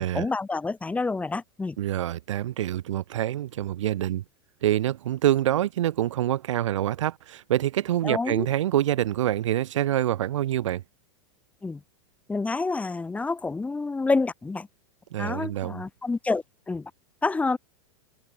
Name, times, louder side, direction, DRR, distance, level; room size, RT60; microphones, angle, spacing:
voice 1, 0.0-1.8 8.0-8.5 11.6-11.8 12.3-14.7 15.2-16.9 17.2-17.6, left 3 dB, 10° left, 1.1 m, -28 dB
voice 2, 1.8-4.2 4.6-10.8 15.1-15.8, right 12 dB, 90° right, 0.7 m, -26 dB
supercardioid pair, 135°, 15 cm